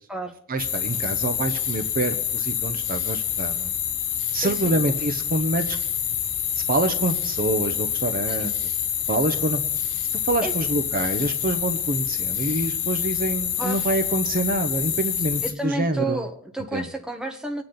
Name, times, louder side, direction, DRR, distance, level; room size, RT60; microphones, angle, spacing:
voice 1, 0.5-3.7 4.3-5.8 6.7-8.5 9.1-9.6 10.2-16.2 16.7-16.9, right 2 dB, 40° right, 8 dB, 0.9 m, -26 dB
sound 1, 0.6-15.5, left 9 dB, 85° left, 1.7 m, -27 dB
voice 2, 4.3-4.8 8.3-8.5 10.4-10.5 13.6-13.8 15.4-17.6, right 2 dB, 5° right, 4 dB, 1.2 m, -31 dB
23.5 x 8.8 x 3.9 m, 0.69 s
head